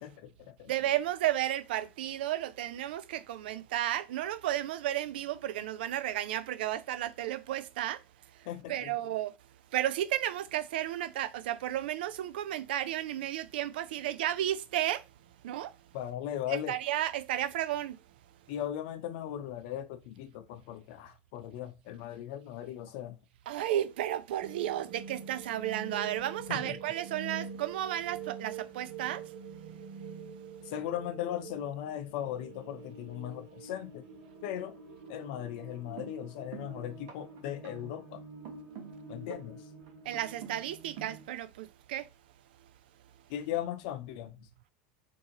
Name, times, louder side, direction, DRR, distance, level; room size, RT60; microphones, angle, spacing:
voice 1, 0.0-0.7 8.4-9.0 15.9-16.8 18.5-23.2 26.5-26.8 30.6-34.1 34.4-34.8 35.1-38.2 39.1-39.7 43.3-44.5, left 11 dB, 70° left, 0.6 m, -38 dB
voice 2, 0.7-8.0 8.7-9.3 9.7-15.0 15.4-15.7 16.5-18.0 23.5-29.2 40.1-42.1, right 12 dB, 80° right, 0.3 m, -33 dB
sound 1, 24.4-41.3, right 6 dB, 60° right, 1.2 m, -45 dB
3.7 x 2.7 x 2.9 m
supercardioid pair, 110°, 5 cm